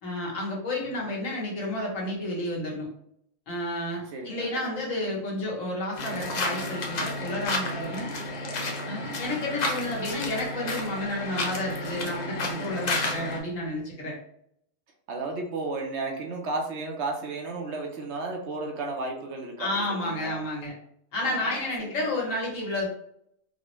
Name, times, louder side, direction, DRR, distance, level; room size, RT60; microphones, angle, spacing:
voice 1, 0.0-2.9 3.5-8.1 8.8-14.1 19.6-20.7 21.1-22.9, left 1 dB, 80° left, -3 dB, 1.5 m, -31 dB
voice 2, 4.1-5.2 9.1-9.4 15.1-20.4 21.2-22.1, right 3 dB, 65° right, 2 dB, 0.9 m, -34 dB
sound 1, 6.0-13.4, left 2 dB, 55° left, 0.4 m, -31 dB
3.9 x 2.0 x 2.9 m, 0.71 s
omnidirectional pair, 1.3 m